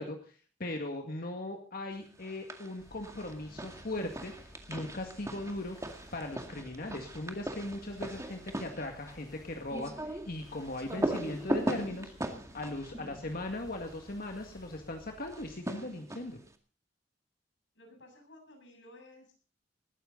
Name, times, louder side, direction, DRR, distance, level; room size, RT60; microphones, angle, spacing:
voice 1, 0.0-5.8 6.1-12.1 12.5-16.4, left 2 dB, 55° left, 3 dB, 2.0 m, -39 dB
sound 1, 2.2-2.7 3.0-14.0 15.3-16.5, right 1 dB, 15° right, 2.0 m, -39 dB
sound 2, 2.8-15.5, equal, 20° left, 4.9 m, -56 dB
voice 2, 17.7-19.5, left 1 dB, 90° left, 3 dB, 7.8 m, -55 dB
20.0 x 15.0 x 4.0 m, 0.41 s
head